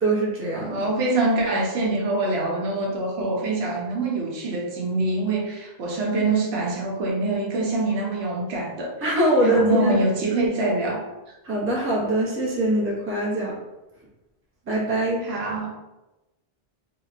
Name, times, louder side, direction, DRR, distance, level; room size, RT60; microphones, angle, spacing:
voice 1, 0.0-0.9 9.0-10.0 11.4-13.5 14.7-15.2, right 1 dB, 20° right, -4 dB, 0.4 m, -23 dB
voice 2, 0.7-8.9 9.4-11.0 15.2-15.7, right 2 dB, 80° right, -1 dB, 0.9 m, -25 dB
2.8 x 2.1 x 2.4 m, 1.0 s
omnidirectional pair, 1.0 m